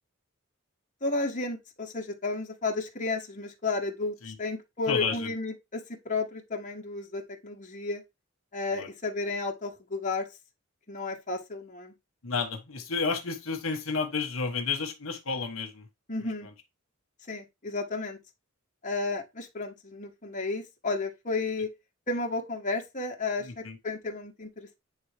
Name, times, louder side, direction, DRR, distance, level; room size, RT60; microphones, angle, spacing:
voice 1, 1.0-8.0 8.5-10.3 10.9-11.9 16.1-16.5 17.3-18.2 18.8-21.7 22.1-24.8, left 3 dB, 40° left, 1.4 m, -32 dB
voice 2, 4.9-5.3 8.7-8.9 12.2-15.9 23.4-23.8, left 4 dB, 75° left, 1.3 m, -31 dB
8.6 x 3.4 x 3.4 m
head